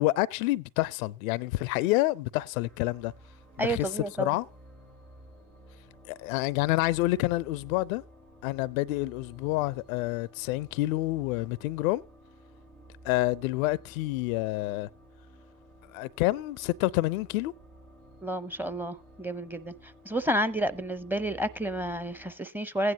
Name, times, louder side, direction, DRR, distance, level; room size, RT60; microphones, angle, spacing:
voice 1, 0.0-3.1 3.6-3.9 4.2-4.5 6.1-8.0 8.4-12.0 13.0-14.9 15.9-17.5, left 19 dB, 70° left, 0.5 m, -28 dB
sound 1, 2.5-22.3, right 1 dB, 90° right, 3.6 m, -54 dB
voice 2, 3.6-4.4 18.2-19.7 20.1-22.9, right 1 dB, 5° right, 0.7 m, -30 dB
15.5 x 9.5 x 2.8 m
figure-of-eight pair, 55°, 43 cm